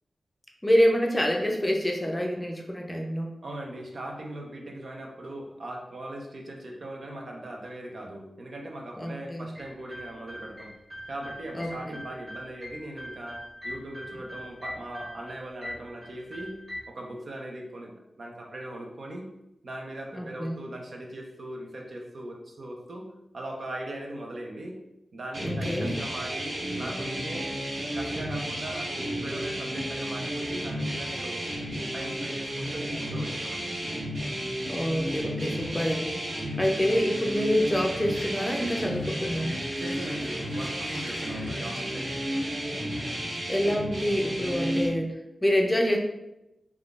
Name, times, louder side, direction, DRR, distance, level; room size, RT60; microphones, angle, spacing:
voice 1, 0.6-3.3 9.0-9.5 11.5-12.0 20.1-20.6 25.4-25.9 34.7-36.2 36.6-39.6 43.5-46.0, equal, 15° left, 1 dB, 0.5 m, -26 dB
voice 2, 3.4-10.7 11.1-16.5 16.9-19.3 19.6-23.1 23.3-24.8 25.1-27.5 27.9-31.5 31.9-33.7 36.8-37.0 39.8-42.5, right 1 dB, 65° right, 0 dB, 0.6 m, -39 dB
sound 1, 9.5-16.8, equal, 30° right, 1.4 m, -42 dB
sound 2, 25.3-44.9, equal, 90° right, 1.1 m, -32 dB
sound 3, 36.5-43.6, left 1 dB, 70° left, 0.6 m, -47 dB
3.6 x 2.3 x 2.4 m, 0.89 s
cardioid pair, 65°, 0 cm